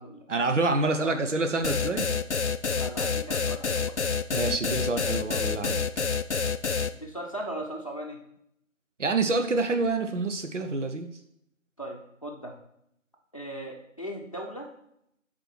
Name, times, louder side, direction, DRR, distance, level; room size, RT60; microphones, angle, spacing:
voice 1, 0.3-2.1 4.3-6.1 9.0-11.1, right 3 dB, 60° right, 7 dB, 1.0 m, -27 dB
voice 2, 0.8-1.2 2.7-3.9 6.9-8.2 11.8-12.5 13.3-14.7, right 1 dB, 25° left, 0 dB, 0.8 m, -38 dB
sound 1, 1.6-6.9, left 5 dB, 60° left, 0.5 m, -27 dB
9.0 x 4.4 x 4.5 m, 0.76 s
figure-of-eight pair, 165°, 40 cm